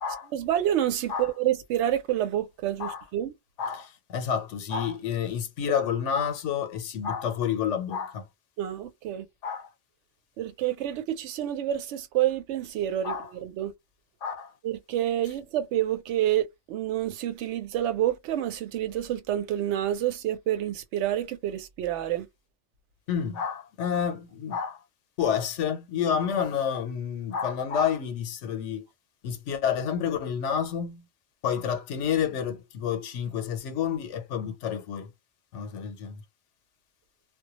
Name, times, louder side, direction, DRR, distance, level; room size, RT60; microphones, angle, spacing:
voice 1, 0.3-3.3 8.6-9.3 10.4-13.1 13.4-13.7 14.6-22.3, right 12 dB, 75° right, 0.9 m, -28 dB
voice 2, 3.6-8.3 9.4-9.7 13.0-13.3 14.2-14.5 23.1-24.8 25.2-28.9 29.2-31.1 31.4-35.1 35.5-36.2, left 8 dB, 85° left, 0.9 m, -29 dB
2.2 x 2.1 x 2.8 m
omnidirectional pair, 1.2 m